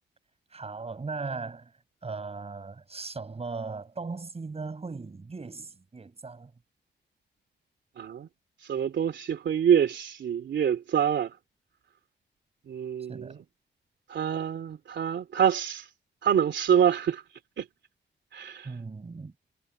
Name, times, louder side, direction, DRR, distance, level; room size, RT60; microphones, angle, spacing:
voice 1, 0.5-1.7 2.0-6.5 13.1-13.4 18.6-19.3, right 4 dB, 35° right, 7.2 m, -38 dB
voice 2, 8.0-8.3 8.7-11.3 12.7-13.3 14.1-15.9 16.2-17.2 17.6-17.7 18.3-18.7, right 8 dB, 75° right, 2.8 m, -26 dB
cardioid pair, 105°, 19 cm